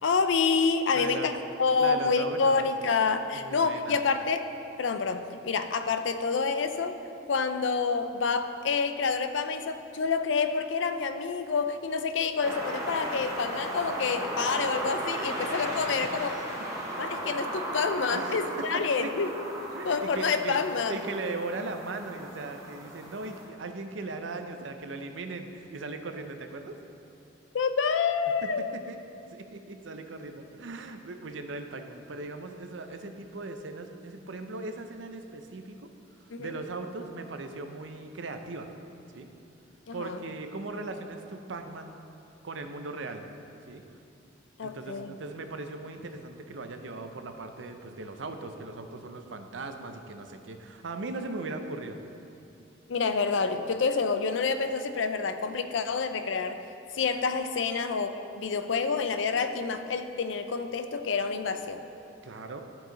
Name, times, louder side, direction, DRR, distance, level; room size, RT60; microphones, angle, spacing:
voice 1, 0.0-1.3 1.6-4.4 4.8-7.0 7.3-16.3 17.0-19.3 19.8-21.0 27.5-28.7 36.3-36.5 39.9-40.2 44.6-45.2 52.9-56.6 56.9-61.8, left 5 dB, 75° left, 9 dB, 0.5 m, -28 dB
voice 2, 0.9-1.4 1.8-2.9 3.3-4.0 16.0-16.1 18.1-19.1 19.7-20.6 20.9-26.8 28.4-28.5 28.9-29.0 29.3-35.9 36.2-38.7 39.1-39.3 39.9-42.0 42.4-43.2 43.7-43.8 44.6-52.0 62.2-62.6, right 3 dB, 80° right, 6 dB, 0.6 m, -38 dB
sound 1, 12.4-23.5, right 1 dB, 15° right, 1.1 m, -36 dB
13.0 x 4.7 x 3.9 m, 2.7 s
head